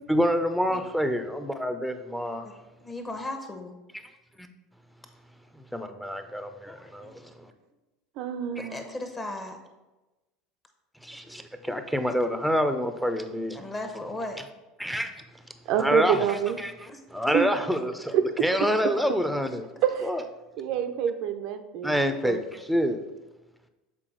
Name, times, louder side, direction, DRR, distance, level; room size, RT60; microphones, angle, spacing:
voice 1, 0.1-2.5 4.4-4.5 5.5-7.5 8.6-8.7 11.0-13.6 14.8-15.1 15.8-19.7 20.0-20.2 21.8-23.0, equal, ahead, 8 dB, 0.6 m, -27 dB
voice 2, 2.8-3.7 6.6-6.9 8.6-9.6 13.5-14.4 16.9-17.0, left 2 dB, 20° left, 5 dB, 1.1 m, -36 dB
voice 3, 8.2-8.8 15.7-16.6 17.3-17.5 19.8-20.1 20.6-22.0 22.2-22.4, right 9 dB, 55° right, 7 dB, 0.4 m, -27 dB
7.4 x 4.1 x 3.8 m, 1.1 s
hypercardioid pair, 75°, 0 cm